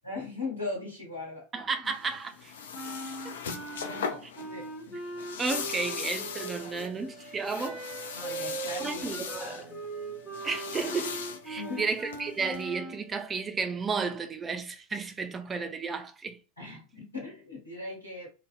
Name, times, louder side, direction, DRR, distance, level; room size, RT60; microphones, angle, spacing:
voice 1, 0.0-1.5 1.8-1.9 3.8-5.0 6.6-6.8 8.1-9.8 11.5-11.8 16.6-18.3, left 3 dB, 85° left, 1.0 m, -39 dB
voice 2, 1.5-2.5 3.2-3.4 5.4-7.8 8.8-9.6 10.4-11.2 11.4-16.4, right 4 dB, 20° right, 0.4 m, -33 dB
sound 1, 1.9-12.6, left 6 dB, 65° left, 0.3 m, -39 dB
Wind instrument woodwind instrument, 2.7-6.9 7.6-13.0, right 3 dB, 5° left, 0.9 m, -40 dB
sound 2, 6.0-13.6, right 4 dB, 35° left, 1.2 m, -54 dB
2.6 x 2.0 x 2.3 m
figure-of-eight pair, 85°, 0 cm